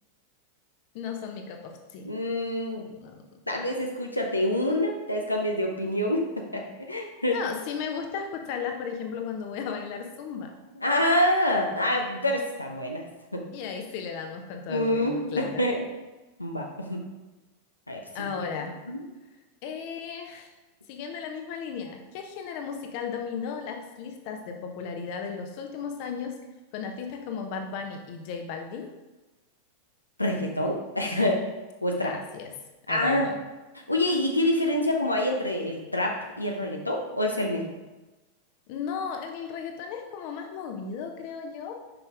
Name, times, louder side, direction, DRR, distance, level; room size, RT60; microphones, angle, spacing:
voice 1, 0.9-2.1 2.9-3.2 7.3-10.5 13.5-15.7 18.1-18.7 19.6-20.5 20.9-26.3 26.7-28.9 32.0-32.5 32.9-33.4 38.7-41.8, left 6 dB, 45° left, 4 dB, 1.0 m, -35 dB
voice 2, 2.0-2.9 3.5-6.6 6.9-7.4 10.8-13.0 13.3-13.4 14.7-15.8 16.4-17.0 17.9-18.5 18.9-19.0 30.2-31.4 31.8-32.1 32.9-33.3 33.9-37.7, left 1 dB, 85° left, 1 dB, 0.8 m, -26 dB
6.9 x 5.7 x 3.6 m, 1.1 s
figure-of-eight pair, 90°, 0 cm